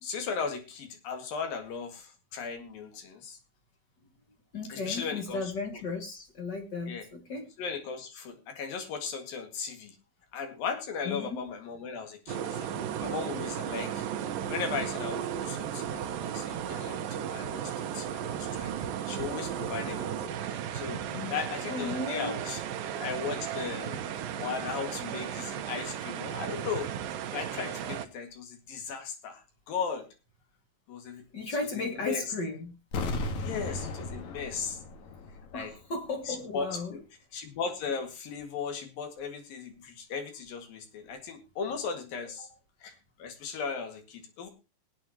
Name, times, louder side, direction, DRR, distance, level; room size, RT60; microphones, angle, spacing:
voice 1, 0.0-3.4 4.7-5.5 6.9-7.0 7.6-10.0 10.3-12.7 13.0-18.7 19.1-21.0 21.3-22.6 23.0-24.0 24.4-26.9 27.3-30.1 30.9-31.2 31.7-32.2 33.4-34.8 35.5-35.7 36.3-37.0 37.3-42.5 42.8-44.5, left 6 dB, 85° left, 5 dB, 3.8 m, -37 dB
voice 2, 4.5-7.5 11.0-11.5 18.7-18.9 21.1-21.3 21.7-22.3 23.9-24.0 24.4-24.5 31.3-32.8 35.5-37.0 42.4-42.5, left 3 dB, 40° left, 6 dB, 1.6 m, -35 dB
sound 1, 12.3-28.1, right 9 dB, 85° right, 2.8 m, -35 dB
sound 2, 32.9-35.8 36.1-36.2, left 2 dB, 60° left, 2.7 m, -35 dB
19.0 x 9.3 x 2.9 m, 0.28 s
omnidirectional pair, 3.9 m